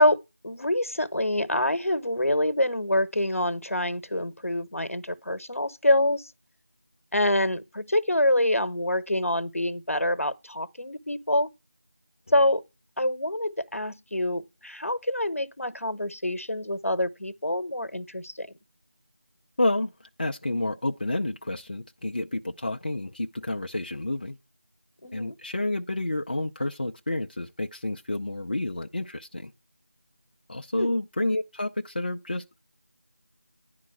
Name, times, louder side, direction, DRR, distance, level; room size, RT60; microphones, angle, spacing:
voice 1, 0.0-6.2 7.1-11.5 12.3-12.6 13.0-18.5 25.0-25.4 30.8-30.9, left 1 dB, 80° left, 0.9 m, -26 dB
voice 2, 19.6-19.9 20.2-24.4 25.1-29.5 30.5-32.6, left 2 dB, 40° left, 0.5 m, -29 dB
10.0 x 3.7 x 6.4 m
figure-of-eight pair, 170°, 7 cm